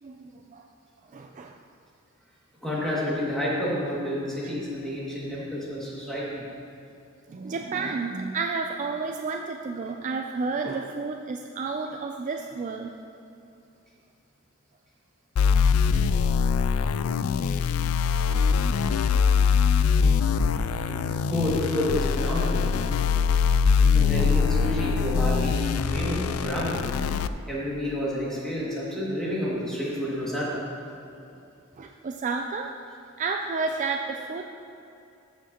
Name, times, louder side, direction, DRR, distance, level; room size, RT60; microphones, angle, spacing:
voice 1, 0.0-0.6 1.1-1.6 7.3-12.9 31.8-32.7 33.2-34.4, right 4 dB, 35° right, 3 dB, 0.4 m, -31 dB
voice 2, 2.6-6.4 20.9-22.7 23.9-26.8 27.5-30.7, left 1 dB, 5° left, -8 dB, 2.2 m, -29 dB
sound 1, 15.4-27.3, left 6 dB, 85° left, 0.3 m, -23 dB
14.5 x 7.2 x 2.9 m, 2.6 s
head